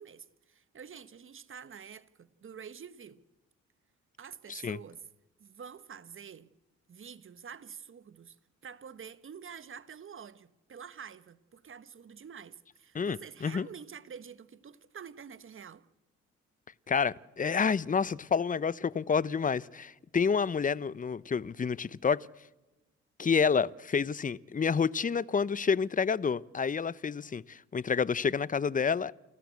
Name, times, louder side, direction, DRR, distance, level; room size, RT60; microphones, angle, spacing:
voice 1, 0.0-3.2 4.2-5.1 5.4-6.5 6.9-8.4 8.6-15.8, right 7 dB, 45° right, 1.2 m, -47 dB
voice 2, 12.9-13.7 16.9-22.3 23.2-29.1, left 6 dB, 30° left, 0.7 m, -29 dB
29.0 x 13.0 x 8.4 m
supercardioid pair, 65°, 29 cm